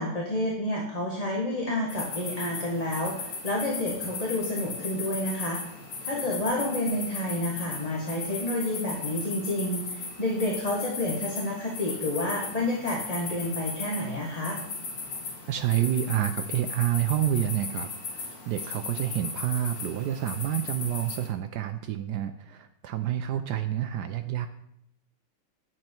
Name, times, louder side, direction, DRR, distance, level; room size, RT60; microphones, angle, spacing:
voice 1, 0.0-5.6 6.0-9.8 10.2-14.6, left 1 dB, 20° left, -3 dB, 1.4 m, -29 dB
sound 1, 1.9-21.3, left 4 dB, 80° left, 2.6 m, -37 dB
voice 2, 15.5-24.5, right 11 dB, 85° right, 8 dB, 0.9 m, -28 dB
8.8 x 7.8 x 4.5 m, 0.76 s
omnidirectional pair, 2.3 m